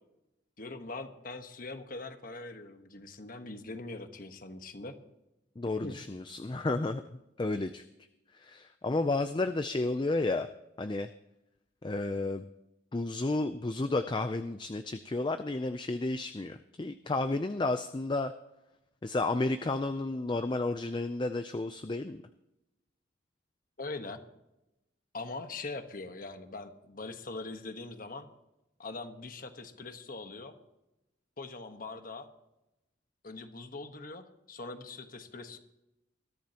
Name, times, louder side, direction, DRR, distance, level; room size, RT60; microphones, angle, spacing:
voice 1, 0.6-4.9 5.8-6.0 23.8-24.2 25.1-28.3 28.8-30.5 31.4-32.3 33.2-35.6, left 3 dB, 45° left, 7 dB, 1.3 m, -42 dB
voice 2, 5.6-7.0 7.4-7.8 8.3-10.5 10.8-11.1 11.8-12.5 12.9-18.3 19.0-22.2, left 2 dB, 25° left, 9 dB, 0.4 m, -32 dB
21.0 x 14.0 x 2.9 m, 0.91 s
head